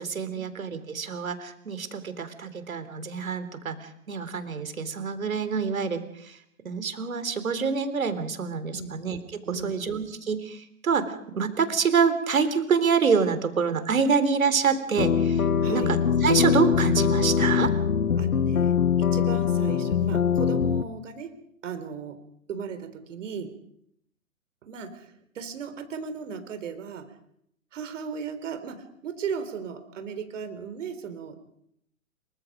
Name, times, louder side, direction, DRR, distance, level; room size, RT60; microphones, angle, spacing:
voice 1, 0.0-6.4 6.6-9.2 9.5-17.7, right 6 dB, 75° right, 11 dB, 3.7 m, -26 dB
sound 1, 15.0-20.8, left 7 dB, 80° left, 1.2 m, -23 dB
voice 2, 15.6-15.9 18.2-21.3 21.6-22.2 22.5-23.5 24.6-27.0 27.7-31.5, right 6 dB, 60° right, 9 dB, 4.1 m, -36 dB
27.5 x 24.5 x 5.2 m, 0.72 s
figure-of-eight pair, 120°, 42 cm